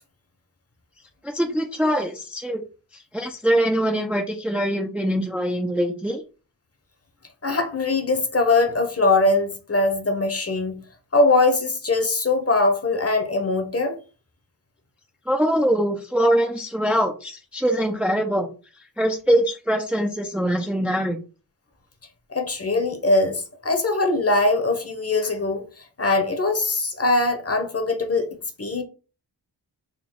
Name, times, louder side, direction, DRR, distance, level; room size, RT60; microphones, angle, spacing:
voice 1, 1.2-2.6 2.9-6.2 15.3-18.5 19.0-21.2, equal, 5° right, 0.5 m, -23 dB
voice 2, 7.4-10.8 11.1-14.0 22.3-28.3 28.6-28.8, left 2 dB, 35° left, 1.0 m, -21 dB
4.0 x 2.3 x 3.7 m
wide cardioid pair, 65°, 42 cm